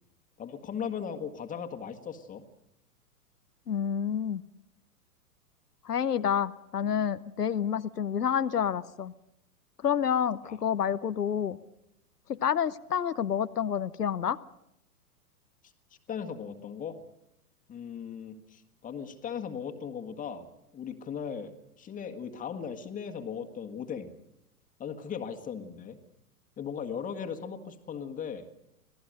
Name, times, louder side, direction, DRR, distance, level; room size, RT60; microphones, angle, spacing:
voice 1, 0.4-2.4 10.5-10.6 16.1-17.0 17.7-20.5 20.7-24.1 24.8-26.0 26.6-28.5, left 7 dB, 15° left, 5 dB, 1.6 m, -38 dB
voice 2, 3.7-4.4 5.8-9.1 9.8-11.6 12.3-14.4, left 8 dB, 80° left, 13 dB, 0.8 m, -28 dB
25.5 x 17.0 x 6.5 m, 0.81 s
figure-of-eight pair, 105°, 46 cm